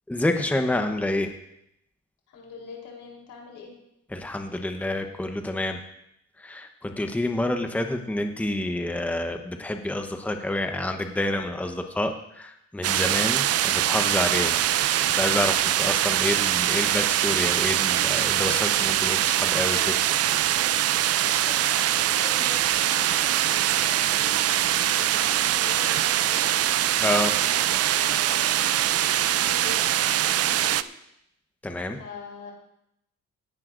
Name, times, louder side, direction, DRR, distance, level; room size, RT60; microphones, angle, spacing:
voice 1, 0.1-1.3 4.1-5.8 6.4-14.6 14.9-19.9 27.0-27.4 31.6-32.0, left 1 dB, 5° left, 5 dB, 1.0 m, -28 dB
voice 2, 2.3-3.8 19.2-20.2 21.3-26.5 27.4-30.8 32.0-32.5, left 5 dB, 80° left, -1 dB, 3.8 m, -43 dB
sound 1, 12.8-30.8, right 12 dB, 55° right, 0.5 m, -23 dB
17.0 x 10.5 x 2.6 m, 0.79 s
cardioid pair, 90°, 30 cm